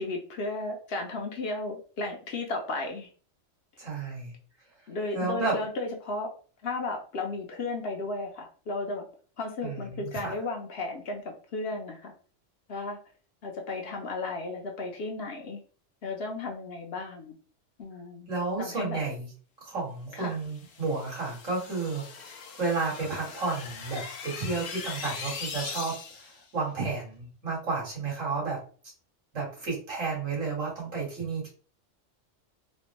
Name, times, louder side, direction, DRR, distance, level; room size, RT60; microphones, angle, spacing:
voice 1, 0.0-3.1 4.9-6.3 6.6-9.0 9.4-11.2 11.5-12.1 12.7-13.0 13.4-15.6 16.0-17.3 17.8-18.3 18.6-19.0 20.2-20.3, left 2 dB, 60° left, 2 dB, 0.8 m, -34 dB
voice 2, 3.8-4.3 5.1-5.6 9.6-10.3 18.3-19.3 19.6-28.6 29.3-31.5, right 4 dB, 85° right, -5 dB, 2.3 m, -32 dB
sound 1, 20.4-26.4, left 5 dB, 85° left, 1.1 m, -40 dB
4.2 x 2.1 x 2.9 m, 0.41 s
omnidirectional pair, 1.3 m